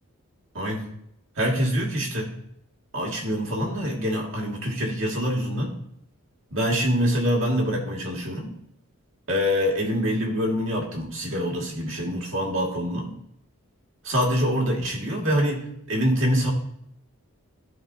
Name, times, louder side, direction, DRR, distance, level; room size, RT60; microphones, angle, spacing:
voice 1, 0.5-0.9 1.4-2.3 2.9-5.8 6.5-8.5 9.3-13.2 14.0-16.5, equal, 65° right, -2 dB, 2.1 m, -25 dB
13.0 x 5.1 x 2.8 m, 0.75 s
head